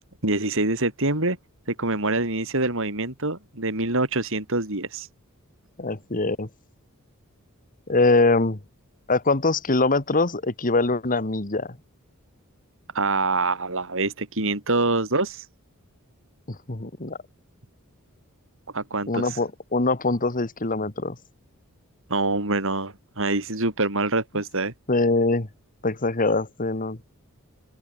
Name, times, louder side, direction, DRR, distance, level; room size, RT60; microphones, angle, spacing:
voice 1, 0.2-1.4 1.7-5.1 12.9-15.4 18.7-19.3 22.1-24.7, right 2 dB, 65° right, 6.1 m, -25 dB
voice 2, 5.8-6.5 7.9-8.6 9.1-11.8 16.5-17.2 19.1-21.2 24.9-25.5 25.8-27.0, left 3 dB, 40° left, 1.8 m, -23 dB
open air
head